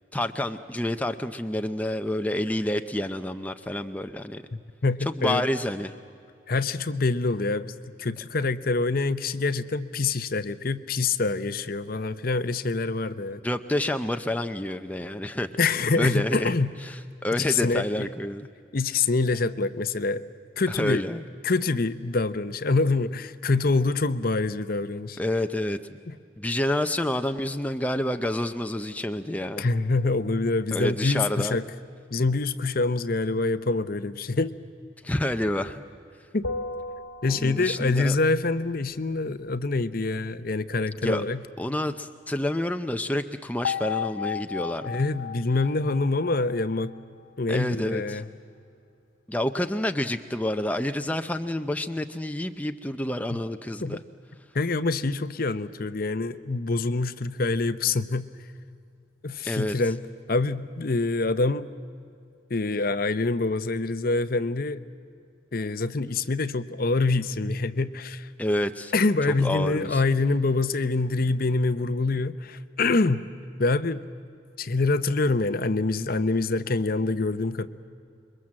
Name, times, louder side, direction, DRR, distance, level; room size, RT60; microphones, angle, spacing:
voice 1, 0.1-4.4 5.1-5.9 13.4-15.5 16.0-16.5 16.8-18.5 20.7-21.2 25.2-25.8 26.4-29.7 30.7-31.5 35.0-35.8 37.3-38.2 41.0-41.2 41.6-44.9 47.5-48.2 49.3-54.0 59.5-59.8 68.4-68.9 69.4-70.0, left 1 dB, 5° left, 7 dB, 0.6 m, -28 dB
voice 2, 4.5-5.4 6.5-13.4 15.6-16.7 17.5-18.1 18.7-20.2 20.6-21.0 21.4-25.2 26.1-26.2 29.6-31.6 32.1-34.5 36.3-36.5 37.2-41.4 44.9-46.9 47.4-48.3 53.3-53.4 53.8-54.0 54.5-58.3 59.2-60.0 60.3-61.7 62.5-64.8 65.5-68.3 68.9-73.3 73.6-74.0 74.6-77.7, left 3 dB, 45° left, 13 dB, 0.7 m, -25 dB
sound 1, 36.4-38.0 43.6-47.0, left 6 dB, 80° left, 1.6 m, -34 dB
27.0 x 23.0 x 7.6 m, 2.4 s
head